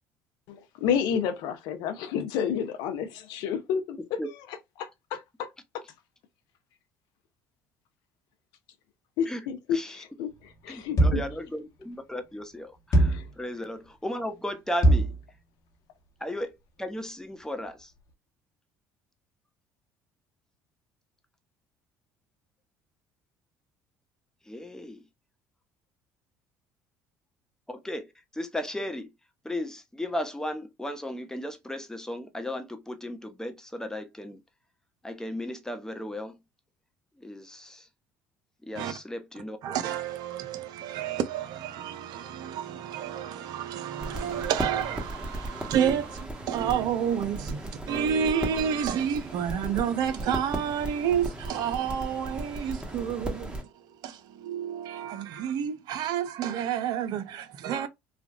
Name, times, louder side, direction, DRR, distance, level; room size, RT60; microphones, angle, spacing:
voice 1, 0.5-4.0 4.8-5.5 9.2-10.3 10.6-11.2 13.1-13.2, left 7 dB, 70° left, 0.6 m, -30 dB
voice 2, 9.3-10.0 10.7-15.1 16.2-16.5 16.8-17.9 24.5-25.0 27.7-29.1 29.4-34.4 35.0-36.4 37.2-37.9 38.6-39.6, left 1 dB, 10° left, 0.9 m, -35 dB
sound 1, 11.0-11.4 12.9-13.3 14.8-15.2, right 1 dB, 50° left, 1.1 m, -21 dB
voice 3, 39.6-57.9, right 8 dB, 65° right, 0.6 m, -30 dB
sound 2, 44.0-53.6, right 1 dB, 15° right, 1.2 m, -36 dB
3.3 x 2.3 x 2.3 m
hypercardioid pair, 70°, 7 cm